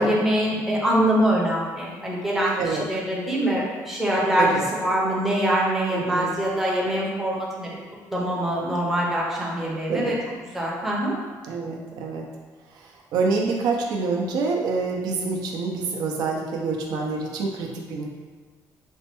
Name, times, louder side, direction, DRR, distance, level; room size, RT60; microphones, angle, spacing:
voice 1, 0.0-7.7 8.1-10.2 10.5-11.1, right 1 dB, 5° right, -5 dB, 0.5 m, -24 dB
voice 2, 5.9-6.3 9.9-10.2 11.5-12.2 13.1-18.1, right 4 dB, 75° right, 0 dB, 0.5 m, -26 dB
4.2 x 2.2 x 2.9 m, 1.4 s
cardioid pair, 175°, 7 cm